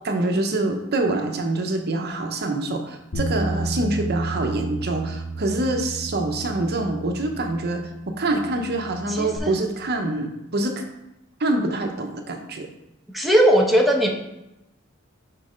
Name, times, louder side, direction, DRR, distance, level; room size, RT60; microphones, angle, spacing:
voice 1, 0.0-10.8 11.4-12.7, right 2 dB, 50° right, 4 dB, 0.8 m, -25 dB
Bass guitar, 3.1-9.4, right 2 dB, 70° left, 1.7 m, -32 dB
voice 2, 9.1-9.6 13.1-14.1, equal, ahead, -1 dB, 0.8 m, -18 dB
6.4 x 4.0 x 5.0 m, 0.90 s
head